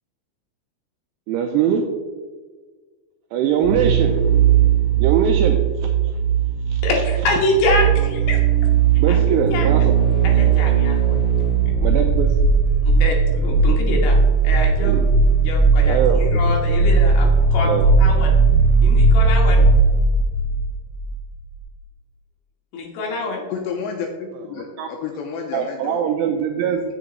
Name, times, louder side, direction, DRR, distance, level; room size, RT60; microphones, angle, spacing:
voice 1, 1.3-1.9 3.3-4.1 5.0-5.6 6.7-6.8 9.0-9.9 11.8-12.3 14.8-15.1 15.9-16.4 17.6-17.9 24.5-24.9 25.5-26.8, right 8 dB, 90° right, 4 dB, 2.4 m, -22 dB
sound 1, 3.6-21.2 21.4-21.5, right 5 dB, 60° right, 2.0 m, -17 dB
voice 2, 6.8-8.4 9.1-9.7 10.2-11.2 12.8-14.9 15.4-17.7 18.0-18.4 18.8-19.6 22.7-23.4, left 2 dB, 65° left, -1 dB, 2.8 m, -25 dB
voice 3, 23.5-26.0, left 6 dB, 85° left, 3 dB, 2.5 m, -30 dB
7.3 x 6.6 x 4.0 m, 1.4 s
omnidirectional pair, 5.4 m